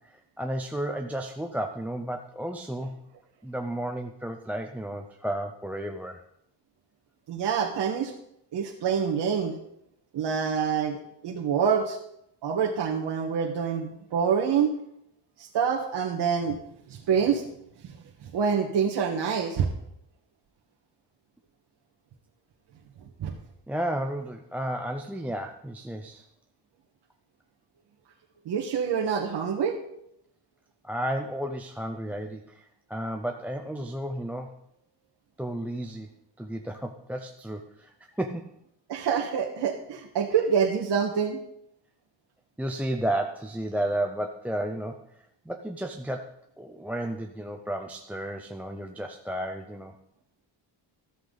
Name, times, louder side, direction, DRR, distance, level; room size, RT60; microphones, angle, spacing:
voice 1, 0.0-2.9 3.4-6.2 23.7-26.3 30.8-34.6 35.4-36.1 36.4-38.5 42.6-50.0, right 1 dB, 5° right, 3 dB, 0.5 m, -33 dB
voice 2, 7.3-8.1 8.5-9.6 10.1-12.0 12.4-14.7 15.4-16.6 16.9-17.4 18.2-19.7 23.2-23.3 28.4-29.8 38.9-41.4, right 7 dB, 65° right, 0 dB, 1.6 m, -26 dB
13.5 x 13.5 x 4.0 m, 0.73 s
wide cardioid pair, 180°, 44 cm